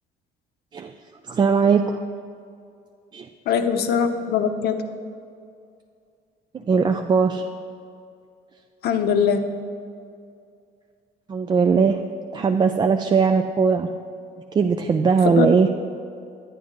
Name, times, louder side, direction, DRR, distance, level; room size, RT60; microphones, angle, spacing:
voice 1, 1.3-2.0 3.1-3.3 6.6-7.4 11.3-12.0 12.3-13.9 14.5-15.7, right 5 dB, 25° right, 5 dB, 0.3 m, -19 dB
voice 2, 3.5-4.7 8.8-9.4 15.2-15.5, left 7 dB, 70° left, 7 dB, 0.7 m, -21 dB
9.7 x 9.2 x 3.7 m, 2.4 s
cardioid pair, 110°, 17 cm